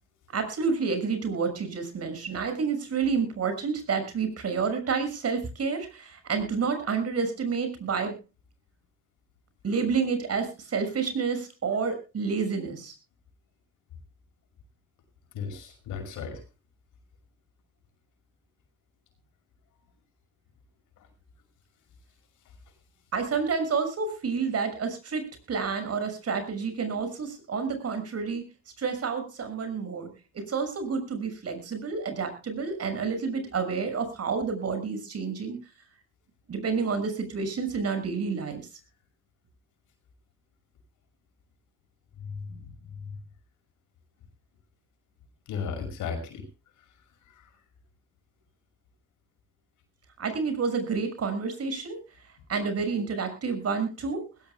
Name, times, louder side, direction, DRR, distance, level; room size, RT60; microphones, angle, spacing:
voice 1, 0.3-8.2 9.6-12.9 23.1-28.4 28.8-35.6 36.5-38.7 50.2-52.0 52.5-54.3, right 5 dB, 55° right, 8 dB, 6.2 m, -29 dB
voice 2, 15.3-16.4 42.4-42.6 45.5-46.5, left 6 dB, 85° left, 6 dB, 6.1 m, -34 dB
20.5 x 18.0 x 2.3 m, 0.31 s
cardioid pair, 90°, 30 cm